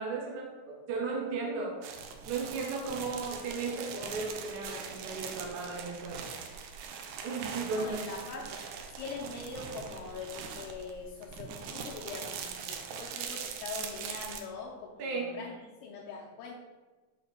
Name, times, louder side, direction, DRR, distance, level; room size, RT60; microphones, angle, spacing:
voice 1, 0.0-1.8 2.3-6.2 7.2-8.1 15.0-15.4, right 4 dB, 65° right, -1 dB, 2.1 m, -35 dB
sound 1, 1.8-14.4, right 6 dB, 85° right, 1.7 m, -42 dB
voice 2, 7.7-8.6 9.0-16.5, left 4 dB, 80° left, -4 dB, 2.2 m, -42 dB
6.6 x 2.7 x 5.6 m, 1.3 s
omnidirectional pair, 4.1 m